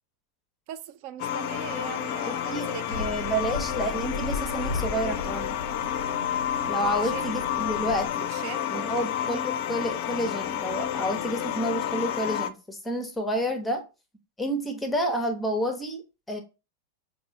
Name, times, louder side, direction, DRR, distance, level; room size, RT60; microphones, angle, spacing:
voice 1, 0.7-3.5 6.8-7.3 8.2-9.1, right 11 dB, 45° right, 0.5 m, -40 dB
sound 1, 1.2-12.5, left 10 dB, 45° left, 0.5 m, -30 dB
voice 2, 2.3-5.6 6.7-8.3 8.7-13.8 14.4-16.4, equal, 5° left, 0.9 m, -30 dB
sound 2, 2.9-8.1, left 2 dB, 90° right, 0.7 m, -36 dB
6.5 x 2.6 x 2.8 m
figure-of-eight pair, 90°, 0 cm